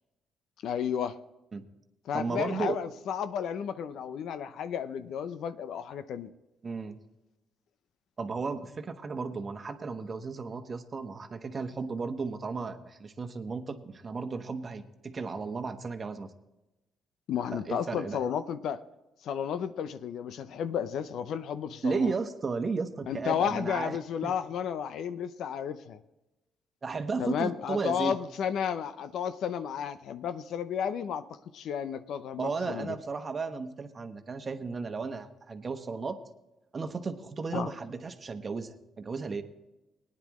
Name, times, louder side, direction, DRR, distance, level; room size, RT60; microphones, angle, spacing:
voice 1, 0.6-1.2 2.1-6.3 17.3-18.8 19.2-22.1 23.1-26.0 27.2-31.2 31.5-32.9 37.5-37.7, left 8 dB, 75° left, 12 dB, 0.7 m, -32 dB
voice 2, 2.1-2.8 6.6-7.0 8.2-16.3 17.5-18.2 21.8-24.0 24.2-24.3 26.8-28.1 32.4-36.2 36.7-39.4, right 4 dB, 35° right, 7 dB, 1.1 m, -34 dB
18.5 x 9.9 x 3.1 m, 0.99 s
cardioid pair, 90°, 0 cm